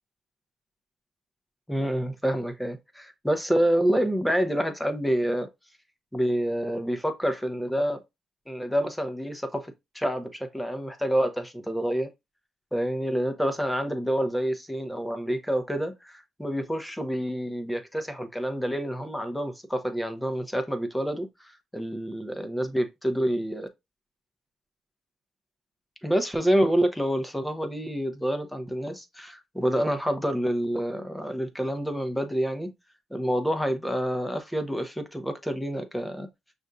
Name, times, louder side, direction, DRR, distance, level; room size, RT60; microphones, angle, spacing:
voice 1, 1.7-5.5 6.1-8.0 8.5-12.1 12.7-23.7 26.0-32.7 33.1-36.3, equal, 5° left, 0.9 m, -28 dB
6.1 x 2.7 x 2.3 m
cardioid pair, 90°, 0 cm